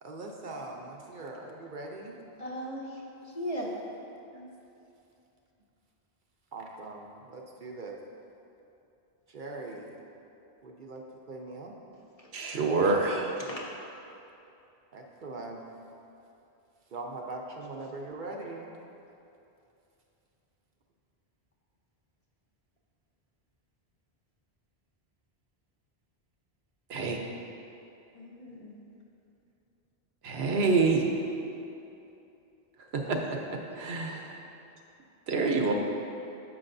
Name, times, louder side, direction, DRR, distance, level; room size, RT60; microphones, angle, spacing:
voice 1, 0.0-2.2 4.3-4.5 6.5-8.0 9.3-10.0 10.6-11.7 14.9-15.6 16.9-18.8, right 2 dB, 55° right, 1 dB, 0.7 m, -41 dB
voice 2, 2.4-3.8 12.2-12.3 13.4-13.7 17.8-17.9 28.1-28.7 33.0-33.2, equal, 40° left, -3 dB, 0.8 m, -38 dB
voice 3, 12.3-13.4 26.9-27.2 30.2-31.0 32.9-33.2 33.8-34.4 35.3-35.7, right 4 dB, 75° right, 2 dB, 1.0 m, -26 dB
9.7 x 7.2 x 2.6 m, 2.8 s
omnidirectional pair, 1.1 m